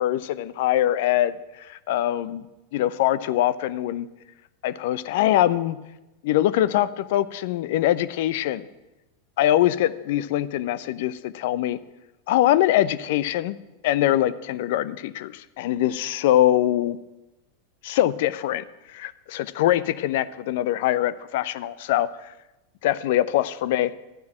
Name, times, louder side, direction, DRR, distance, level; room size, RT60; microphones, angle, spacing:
voice 1, 0.0-2.5 2.7-4.1 4.6-5.8 6.2-8.7 9.4-11.8 12.3-13.6 13.8-17.0 17.8-22.3 22.8-23.9, left 13 dB, 65° left, 17 dB, 0.7 m, -23 dB
13.0 x 9.5 x 8.8 m, 1.0 s
hypercardioid pair, 100°, 0 cm